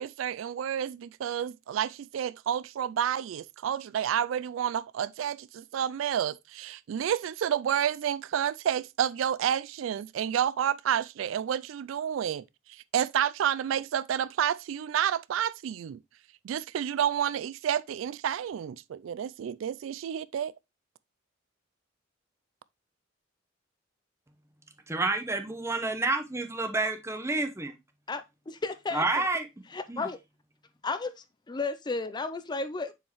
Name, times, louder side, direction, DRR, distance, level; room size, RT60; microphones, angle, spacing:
voice 1, 0.0-12.4 12.9-16.0 16.4-20.5, right 9 dB, 80° right, 0.3 m, -30 dB
voice 2, 24.9-27.7 28.9-29.4 29.9-30.1, right 2 dB, 15° right, 0.8 m, -29 dB
voice 3, 28.1-29.3 29.7-30.2 30.8-31.1 31.5-32.9, left 3 dB, 20° left, 0.4 m, -33 dB
7.1 x 4.5 x 3.0 m
head